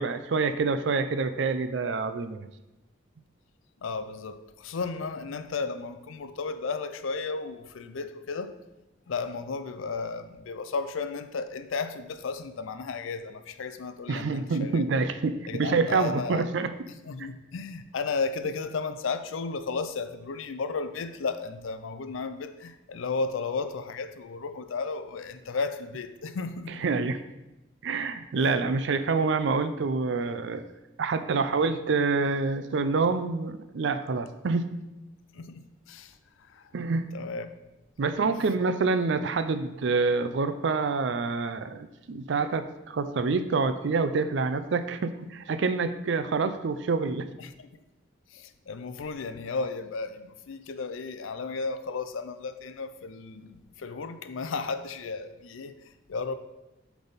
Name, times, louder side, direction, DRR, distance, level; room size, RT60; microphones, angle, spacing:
voice 1, 0.0-2.5 14.1-16.7 17.2-17.3 26.8-27.2 27.8-30.6 31.0-34.7 36.7-37.1 38.0-47.3, right 4 dB, 60° right, 11 dB, 0.4 m, -27 dB
voice 2, 3.8-8.6 9.1-14.9 15.5-16.5 17.0-26.9 35.3-36.7 37.1-37.5 47.4-47.7 48.3-56.4, left 4 dB, 80° left, 10 dB, 0.5 m, -34 dB
8.0 x 3.5 x 4.0 m, 0.98 s
head